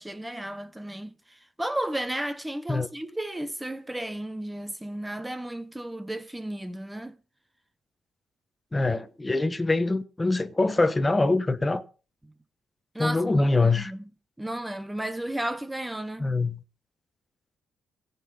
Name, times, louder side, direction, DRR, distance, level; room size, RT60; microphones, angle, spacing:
voice 1, 0.0-7.2 12.9-14.1 14.4-16.3, right 1 dB, 10° right, 1.0 m, -34 dB
voice 2, 8.7-11.8 13.0-13.9 16.2-16.5, left 2 dB, 15° left, 1.2 m, -24 dB
16.5 x 5.9 x 7.2 m
cardioid pair, 90°, 0 cm